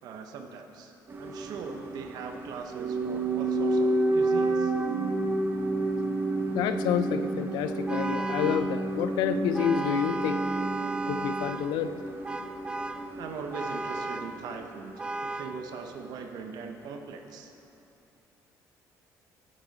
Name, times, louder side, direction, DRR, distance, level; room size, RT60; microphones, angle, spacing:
voice 1, 0.0-0.9 1.2-4.7 13.2-14.9 15.2-17.5, right 5 dB, 65° right, 4 dB, 0.8 m, -40 dB
sound 1, 1.1-15.2 15.4-15.5, right 2 dB, 30° right, 0.8 m, -30 dB
voice 2, 6.5-10.4 11.1-11.9, left 10 dB, 90° left, 11 dB, 0.4 m, -29 dB
Vehicle horn car horn honking, 7.9-8.8 9.5-11.7 12.2-13.1 13.5-14.4 15.0-15.6, right 2 dB, 15° right, 0.3 m, -34 dB
9.6 x 8.4 x 4.0 m, 2.6 s
cardioid pair, 140°, 7 cm